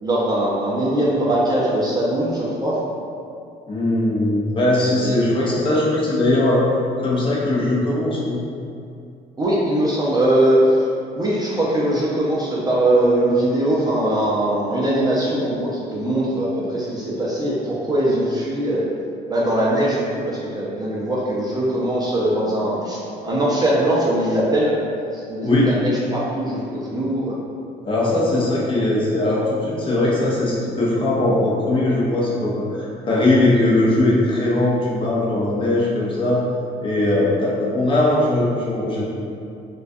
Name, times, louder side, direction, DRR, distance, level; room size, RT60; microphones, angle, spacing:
voice 1, 0.0-2.8 5.0-5.7 9.4-10.9 11.2-18.9 19.3-24.8 25.1-27.4, right 1 dB, 25° right, -6 dB, 0.4 m, -21 dB
voice 2, 3.7-6.6 7.0-8.4 25.4-25.7 27.8-36.4 36.8-39.0, left 1 dB, 30° left, -6 dB, 0.6 m, -20 dB
2.3 x 2.2 x 2.5 m, 2.5 s
cardioid pair, 110°, 17 cm